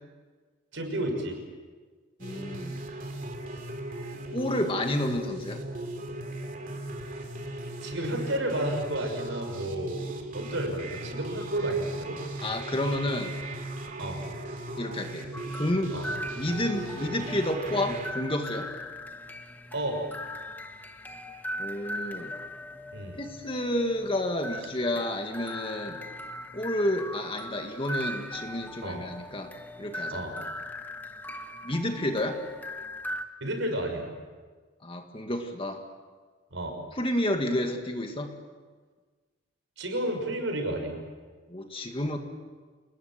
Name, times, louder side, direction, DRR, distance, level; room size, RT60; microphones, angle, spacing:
voice 1, 0.7-1.4 7.8-10.1 10.3-12.2 14.0-14.2 15.9-16.1 19.7-20.0 22.9-23.2 28.8-29.0 30.1-30.4 33.4-34.1 36.5-36.8 39.8-41.0, right 1 dB, 65° right, 4 dB, 6.0 m, -31 dB
voice 2, 2.2-2.8 4.3-5.6 12.4-13.3 14.8-15.3 15.5-16.0 16.3-18.7 21.6-22.3 23.2-26.0 26.5-29.5 29.8-30.2 31.6-32.4 34.8-35.8 37.0-38.3 41.5-42.2, left 1 dB, 25° left, 4 dB, 1.9 m, -30 dB
sound 1, 2.2-18.1, right 1 dB, 40° right, 2.8 m, -37 dB
sound 2, 15.3-33.2, left 1 dB, 10° left, 1.2 m, -39 dB
29.0 x 20.0 x 7.6 m, 1.4 s
head